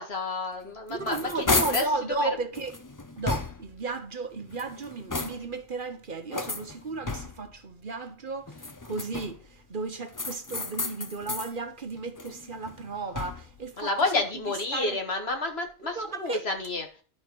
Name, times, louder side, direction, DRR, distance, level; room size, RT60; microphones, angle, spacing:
voice 1, 0.0-1.8 2.2-2.3 13.8-16.9, left 2 dB, 65° left, 2.0 m, -30 dB
sound 1, 0.6-2.0 2.5-3.8 4.4-5.6 6.3-7.6 8.5-9.5 10.1-11.5 12.0-13.6, left 3 dB, 25° left, 0.5 m, -33 dB
voice 2, 0.9-2.7 3.2-14.2 14.7-15.0 15.8-16.5, right 3 dB, 50° right, 1.1 m, -34 dB
11.0 x 4.6 x 6.1 m
omnidirectional pair, 1.2 m